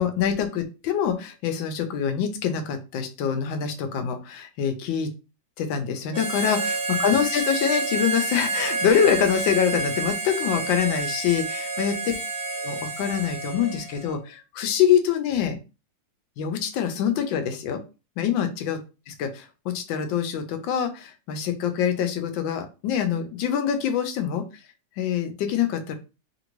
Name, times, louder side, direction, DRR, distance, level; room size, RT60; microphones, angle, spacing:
voice 1, 0.0-5.1 5.6-12.1 12.6-15.6 16.4-17.8 18.2-18.8 19.1-24.4 25.0-25.9, left 8 dB, 85° left, 7 dB, 1.4 m, -25 dB
Harmonica, 6.1-14.2, right 3 dB, 65° right, 0.5 m, -29 dB
3.3 x 2.6 x 2.9 m, 0.30 s
omnidirectional pair, 2.0 m